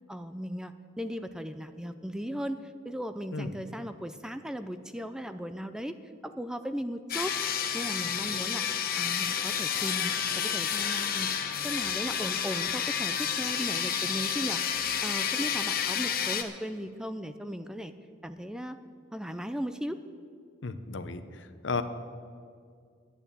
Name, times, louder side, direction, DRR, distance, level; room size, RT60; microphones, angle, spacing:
voice 1, 0.1-6.0 6.2-8.6 9.0-11.3 11.6-14.6 15.0-17.9 18.2-18.8 19.1-20.0, equal, 5° right, 10 dB, 0.4 m, -37 dB
sound 1, 7.1-16.4, left 8 dB, 50° left, 0.9 m, -30 dB
Wind instrument woodwind instrument, 7.1-15.9, left 2 dB, 25° left, 0.9 m, -44 dB
voice 2, 20.6-21.8, left 4 dB, 75° left, 10 dB, 0.8 m, -34 dB
11.0 x 8.8 x 8.6 m, 2.3 s
head